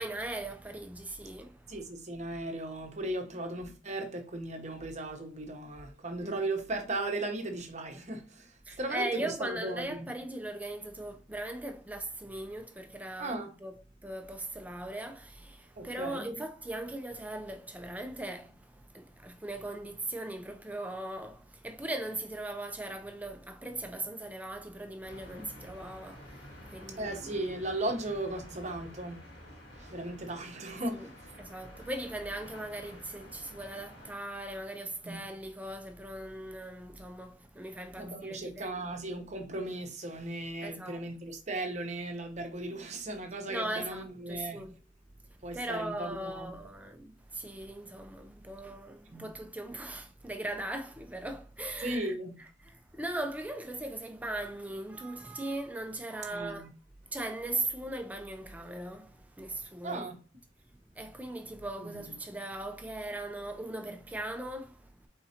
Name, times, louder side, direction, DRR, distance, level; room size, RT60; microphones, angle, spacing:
voice 1, 0.0-1.8 6.2-6.5 8.7-27.4 30.9-31.1 31.4-38.7 40.6-41.0 43.5-44.7 45.4-52.1 52.6-56.7 57.1-60.1 61.0-65.1, right 1 dB, 10° right, 0.5 m, -39 dB
voice 2, 1.7-10.1 13.2-13.6 15.8-16.4 25.4-25.5 27.0-29.3 29.7-31.4 35.0-35.3 38.0-44.7 45.4-46.5 49.1-49.3 51.8-52.3 56.3-56.7 59.8-60.2 61.8-62.1, right 2 dB, 40° right, 0.9 m, -37 dB
sound 1, 25.0-34.1, left 1 dB, 60° left, 2.0 m, -50 dB
4.6 x 3.8 x 2.8 m
head